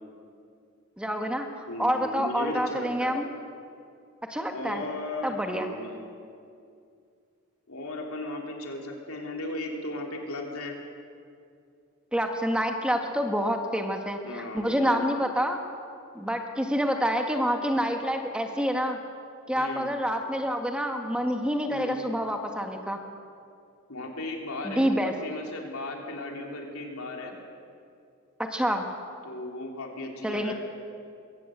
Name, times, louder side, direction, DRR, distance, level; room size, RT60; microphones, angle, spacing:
voice 1, 1.0-3.3 4.3-4.8 5.2-5.7 12.1-15.6 16.1-19.0 19.5-23.0 24.6-25.1 28.4-28.9 30.2-30.5, equal, 5° right, 4 dB, 1.3 m, -27 dB
voice 2, 1.7-3.2 4.5-6.0 7.7-10.8 14.2-15.1 19.5-19.9 21.7-22.0 23.9-27.3 29.2-30.5, left 2 dB, 75° left, 1 dB, 3.5 m, -36 dB
22.5 x 16.5 x 7.9 m, 2.4 s
head